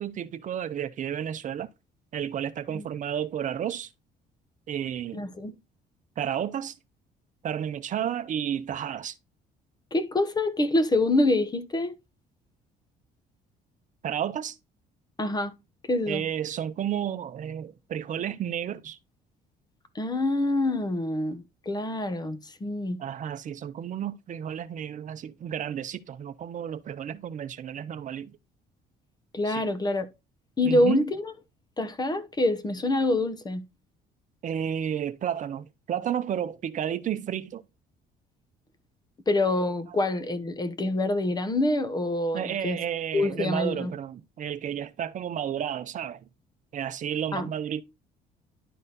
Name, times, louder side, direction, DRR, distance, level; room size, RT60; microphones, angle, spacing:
voice 1, 0.0-1.7 2.1-3.9 4.7-5.2 6.2-6.7 7.4-9.1 14.0-14.6 16.1-19.0 23.0-28.3 29.5-29.6 30.6-31.0 34.4-37.6 42.3-46.2 46.7-47.8, right 9 dB, 50° right, 0.7 m, -32 dB
voice 2, 5.1-5.5 9.9-11.9 15.2-15.5 15.9-16.2 19.9-23.0 29.3-30.1 30.6-31.3 31.8-33.6 39.3-42.8 43.1-43.9 47.3-47.5, left 2 dB, 25° left, 1.1 m, -26 dB
11.0 x 4.1 x 4.1 m
cardioid pair, 110°, 17 cm